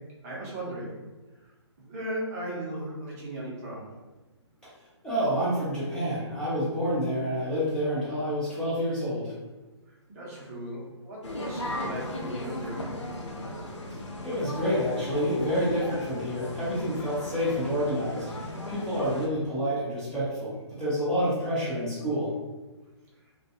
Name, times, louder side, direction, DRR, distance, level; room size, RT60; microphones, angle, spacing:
voice 1, 0.2-1.0 1.8-3.9 10.1-12.8, right 1 dB, 30° right, -5 dB, 0.7 m, -37 dB
voice 2, 5.0-9.3 14.2-18.2 18.7-22.3, equal, 5° left, -11 dB, 0.7 m, -28 dB
sound 1, 11.2-19.3, left 1 dB, 80° left, 0.6 m, -36 dB
2.3 x 2.2 x 2.7 m, 1.2 s
figure-of-eight pair, 135°, 15 cm